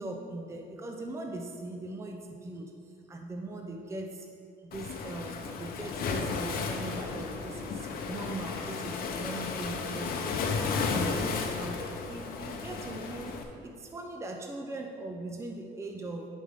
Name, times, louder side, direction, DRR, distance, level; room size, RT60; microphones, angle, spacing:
voice 1, 0.0-2.7 3.1-4.3 4.6-10.5 10.9-16.3, right 2 dB, 15° right, 2 dB, 0.6 m, -40 dB
Waves surf, 4.7-13.4, left 5 dB, 60° left, 0.8 m, -34 dB
10.0 x 5.1 x 3.6 m, 2.5 s
cardioid pair, 110°, 17 cm